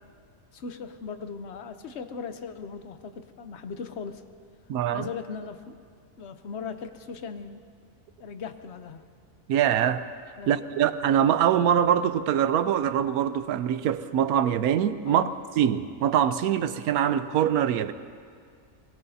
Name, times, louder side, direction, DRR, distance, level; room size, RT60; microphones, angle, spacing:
voice 1, 0.5-4.2 4.9-5.7 6.2-7.6 8.2-9.0 10.4-10.8 15.1-15.3, left 5 dB, 55° left, 1.0 m, -38 dB
voice 2, 4.7-5.1 9.5-10.1 10.5-15.3 15.6-17.9, right 9 dB, 90° right, 1.1 m, -23 dB
22.5 x 22.0 x 2.8 m
omnidirectional pair, 1.5 m